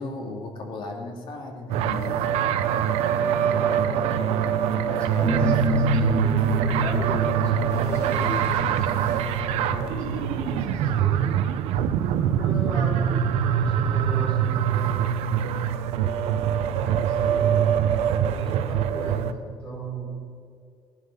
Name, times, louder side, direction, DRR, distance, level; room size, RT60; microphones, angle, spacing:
voice 1, 0.0-2.2 12.5-12.8, left 2 dB, 50° left, 2 dB, 2.4 m, -36 dB
sound 1, 1.7-19.3, right 9 dB, 75° right, 0.8 m, -24 dB
voice 2, 3.4-11.4 12.2-13.1 13.4-15.5 15.9-17.5 18.3-20.1, right 2 dB, 10° left, -4 dB, 4.6 m, -36 dB
sound 2, 5.2-14.6, right 2 dB, 25° right, 2.3 m, -28 dB
Water / Sink (filling or washing), 7.7-9.5, equal, 25° left, 4.1 m, -42 dB
17.5 x 11.5 x 5.6 m, 2.2 s
cardioid pair, 175°, 11 cm